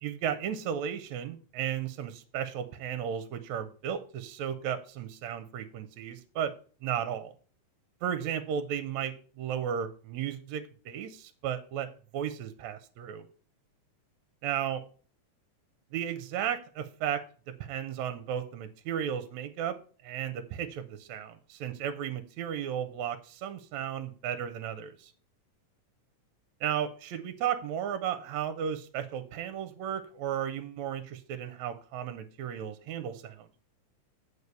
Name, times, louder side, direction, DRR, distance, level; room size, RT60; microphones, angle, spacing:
voice 1, 0.0-6.5 6.8-7.3 8.0-13.3 14.4-14.8 15.9-17.2 17.6-19.8 20.0-25.1 26.6-33.5, right 9 dB, 75° right, 10 dB, 1.9 m, -34 dB
8.3 x 4.8 x 6.7 m, 0.40 s
omnidirectional pair, 3.6 m